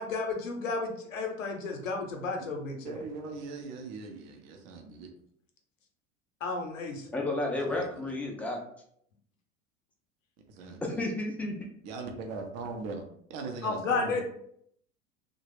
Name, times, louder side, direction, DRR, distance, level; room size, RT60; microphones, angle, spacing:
voice 1, 0.0-3.0 6.4-7.0 13.6-14.2, left 3 dB, 75° left, 3 dB, 0.7 m, -32 dB
voice 2, 2.8-5.1 7.7-8.1 10.6-11.0 11.8-13.0 13.3-14.2, right 4 dB, 40° right, 3 dB, 0.7 m, -40 dB
voice 3, 7.1-8.6 10.8-11.7, left 2 dB, 5° left, 0 dB, 0.4 m, -32 dB
3.1 x 2.2 x 3.3 m, 0.68 s
figure-of-eight pair, 75°, 40 cm